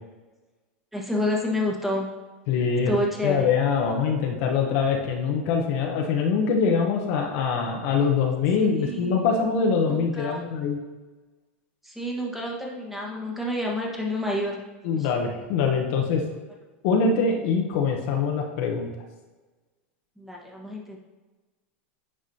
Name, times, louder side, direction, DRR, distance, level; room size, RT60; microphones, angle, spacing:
voice 1, 0.9-2.1 2.8-3.5 8.6-9.2 9.9-10.4 11.8-14.6 14.9-15.1 20.2-21.0, left 1 dB, 5° right, -2 dB, 1.4 m, -29 dB
voice 2, 2.5-2.9 3.2-10.8 14.8-16.2 16.8-18.9, left 5 dB, 60° left, 1 dB, 1.0 m, -23 dB
9.9 x 4.9 x 2.8 m, 1.3 s
hypercardioid pair, 110°, 7 cm